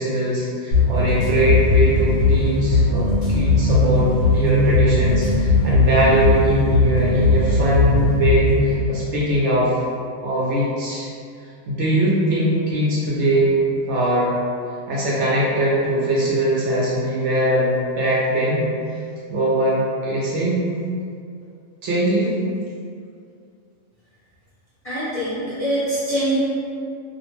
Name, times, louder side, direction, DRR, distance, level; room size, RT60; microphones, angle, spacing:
voice 1, 0.0-4.1 4.3-9.7 10.2-11.1 11.7-13.5 13.9-14.4 14.9-18.7 19.3-20.6 21.8-22.3, right 1 dB, 65° right, -6 dB, 0.8 m, -21 dB
sound 1, 0.7-8.7, left 2 dB, 85° left, 1.1 m, -18 dB
voice 2, 24.8-26.4, right 1 dB, 40° left, -13 dB, 0.5 m, -24 dB
2.5 x 2.0 x 2.9 m, 2.3 s
omnidirectional pair, 1.4 m